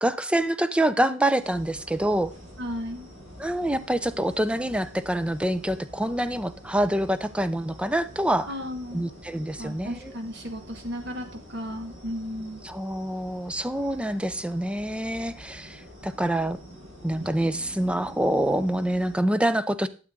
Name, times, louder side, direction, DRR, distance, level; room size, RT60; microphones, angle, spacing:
voice 1, 0.0-2.3 3.4-8.5 8.9-10.1 12.6-16.6 17.0-19.9, right 1 dB, 5° right, 13 dB, 0.5 m, -26 dB
sound 1, 1.4-19.2, equal, 85° right, 6.6 m, -46 dB
voice 2, 2.6-3.1 8.5-9.1 9.6-12.6, equal, 60° right, 4 dB, 2.1 m, -34 dB
12.0 x 7.4 x 3.7 m, 0.36 s
head